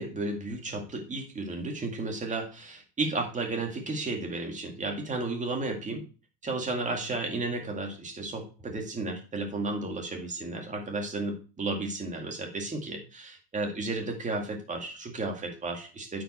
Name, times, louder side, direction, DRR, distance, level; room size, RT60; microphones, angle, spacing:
voice 1, 0.0-6.0 6.4-16.2, right 2 dB, 20° right, 2 dB, 2.0 m, -33 dB
8.9 x 5.1 x 4.3 m, 0.36 s
supercardioid pair, 130°, 39 cm